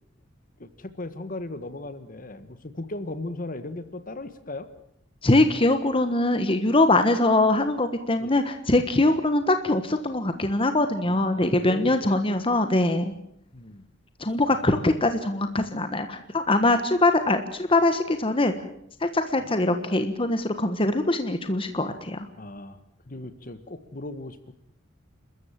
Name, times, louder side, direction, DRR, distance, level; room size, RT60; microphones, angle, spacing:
voice 1, 0.6-4.7 8.2-8.4 11.0-12.2 13.5-13.9 14.5-14.9 19.4-19.5 22.4-24.5, left 2 dB, 45° left, 11 dB, 1.6 m, -38 dB
voice 2, 5.2-13.1 14.2-18.5 19.0-22.3, left 2 dB, 30° left, 8 dB, 1.4 m, -22 dB
30.0 x 14.0 x 7.6 m, 0.72 s
head